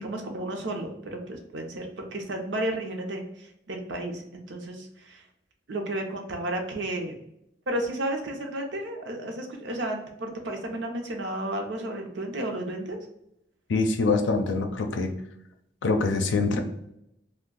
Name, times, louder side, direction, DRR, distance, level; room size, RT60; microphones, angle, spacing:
voice 1, 0.0-5.2 5.7-7.1 7.7-13.0, right 1 dB, 80° right, 2 dB, 0.7 m, -32 dB
voice 2, 13.7-15.1 15.8-16.6, left 3 dB, 85° left, 6 dB, 0.5 m, -24 dB
2.6 x 2.2 x 3.7 m, 0.80 s
head